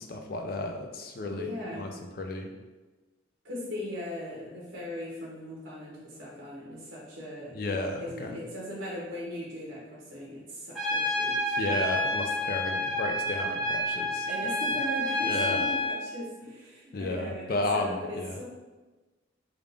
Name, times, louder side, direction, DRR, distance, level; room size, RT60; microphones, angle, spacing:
voice 1, 0.0-1.5 1.8-1.9 2.2-2.5 7.5-8.4 11.6-14.3 15.2-15.6 16.9-18.4, left 2 dB, 50° left, 3 dB, 0.4 m, -33 dB
voice 2, 1.3-1.9 3.4-7.6 8.0-11.6 14.3-18.4, left 1 dB, 80° right, -5 dB, 1.0 m, -39 dB
Trumpet, 10.8-16.0, left 1 dB, ahead, 0.8 m, -29 dB
3.5 x 2.4 x 3.3 m, 1.2 s
head